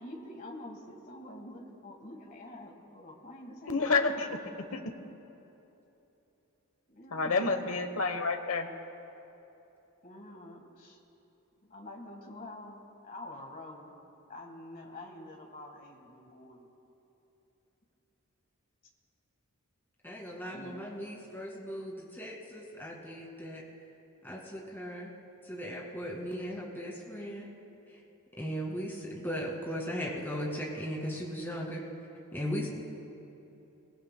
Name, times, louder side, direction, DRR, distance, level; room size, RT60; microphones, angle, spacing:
voice 1, 0.0-4.0 6.9-7.8 10.0-11.0 11.6-14.0 14.3-16.7 20.5-20.8, left 1 dB, 40° left, 2 dB, 1.6 m, -47 dB
voice 2, 3.7-4.8 7.1-8.7, left 4 dB, 70° left, 7 dB, 1.0 m, -29 dB
voice 3, 20.0-23.6 24.2-25.1 25.4-27.5 27.9-28.0 28.4-31.8 32.3-32.7, equal, 10° left, -3 dB, 2.0 m, -37 dB
22.0 x 18.0 x 2.2 m, 3.0 s
head